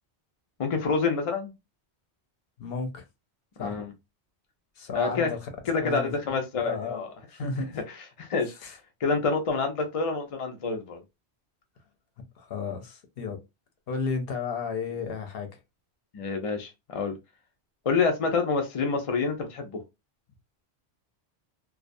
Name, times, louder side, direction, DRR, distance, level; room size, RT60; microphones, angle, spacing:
voice 1, 0.6-1.5 3.6-3.9 4.9-5.3 5.7-7.1 7.7-7.8 8.2-11.0 16.1-17.1 17.9-19.8, left 4 dB, 45° left, 0.4 m, -27 dB
voice 2, 2.6-3.0 3.6-3.8 4.8-5.5 5.8-7.0 7.4-7.8 8.6-8.7 12.4-13.4 13.9-15.5, left 5 dB, 65° left, 0.8 m, -33 dB
2.3 x 2.2 x 2.5 m
omnidirectional pair, 1.1 m